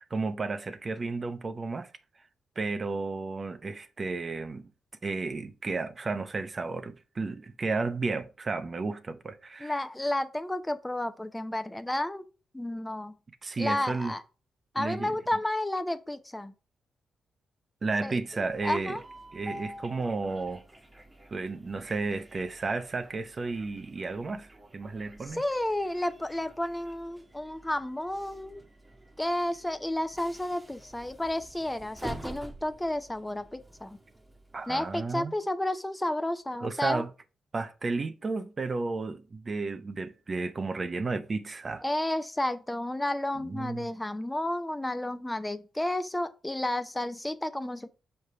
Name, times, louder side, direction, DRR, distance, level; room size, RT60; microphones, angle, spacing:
voice 1, 0.0-1.9 2.6-4.7 5.0-9.8 13.4-14.1 14.8-15.2 17.8-19.0 19.3-20.6 21.3-24.5 24.7-25.4 34.5-35.3 36.6-37.1 37.5-41.8 43.3-43.9, right 3 dB, 45° right, 0.7 m, -33 dB
voice 2, 9.6-12.2 12.5-13.1 13.6-14.2 14.7-16.5 18.0-18.2 18.6-19.0 25.3-28.6 29.2-34.0 34.7-37.0 41.8-47.9, left 1 dB, 15° left, 0.7 m, -31 dB
Train, 18.1-35.2, right 1 dB, 20° right, 1.2 m, -48 dB
5.4 x 3.3 x 5.5 m
supercardioid pair, 50°, 0 cm